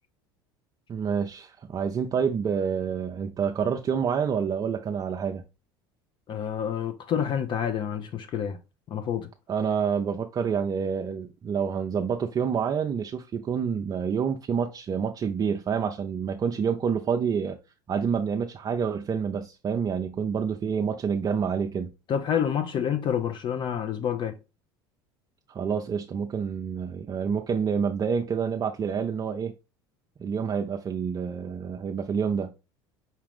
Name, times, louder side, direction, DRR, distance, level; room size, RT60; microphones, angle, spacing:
voice 1, 0.9-5.4 9.5-17.6 17.9-21.9 25.5-29.5 30.2-32.5, right 6 dB, 30° right, 0.5 m, -28 dB
voice 2, 6.3-8.6 8.9-9.3 22.1-24.4, left 8 dB, 40° left, 0.5 m, -28 dB
5.7 x 2.4 x 3.4 m
hypercardioid pair, 80°, 12 cm